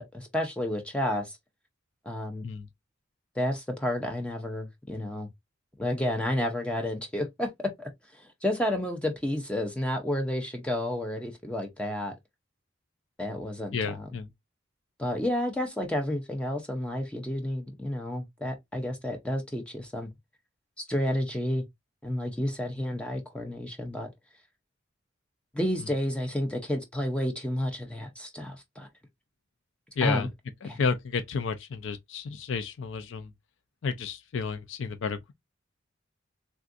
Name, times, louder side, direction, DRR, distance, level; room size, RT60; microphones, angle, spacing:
voice 1, 0.0-1.4 2.1-2.4 3.4-5.3 5.8-7.5 7.8-12.1 13.2-14.0 15.0-20.1 20.8-21.6 22.0-24.1 25.5-28.9 30.0-30.3 30.7-30.8, left 1 dB, 5° left, 0.5 m, -31 dB
voice 2, 13.7-14.3 30.0-30.3 30.6-33.3 33.8-35.3, left 5 dB, 75° left, 0.4 m, -31 dB
3.5 x 2.5 x 2.4 m
head